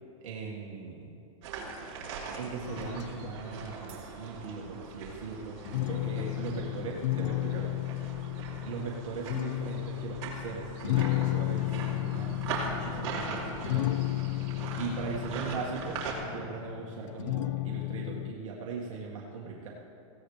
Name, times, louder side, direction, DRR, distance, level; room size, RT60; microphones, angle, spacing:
voice 1, 0.2-1.1 2.3-7.8 8.6-13.9 14.8-19.7, right 5 dB, 75° right, -3 dB, 1.9 m, -39 dB
sound 1, 1.4-16.1, right 5 dB, 55° right, 3.2 m, -41 dB
sound 2, 2.7-3.8 5.7-18.3, left 17 dB, 70° left, 0.5 m, -33 dB
Crash cymbal, 3.9-5.6, right 7 dB, 30° right, 1.9 m, -59 dB
17.5 x 16.0 x 3.3 m, 2.7 s
supercardioid pair, 150°, 17 cm